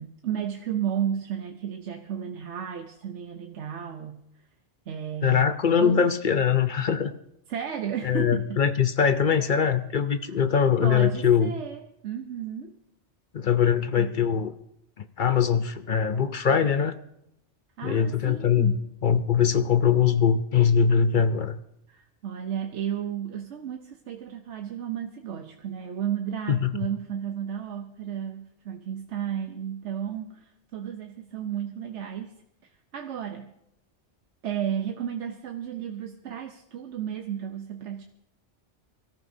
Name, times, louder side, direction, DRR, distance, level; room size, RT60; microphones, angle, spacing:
voice 1, 0.0-4.2 4.9-6.1 7.5-8.6 10.8-12.7 14.0-14.2 17.8-18.9 21.9-32.3 32.9-33.5 34.4-38.0, right 9 dB, 85° right, 4 dB, 1.1 m, -33 dB
voice 2, 5.2-7.1 8.0-11.5 13.3-14.5 15.0-17.0 17.8-21.6 26.5-26.7, left 7 dB, 50° left, 10 dB, 0.7 m, -22 dB
25.0 x 13.5 x 2.7 m, 0.79 s
omnidirectional pair, 1.2 m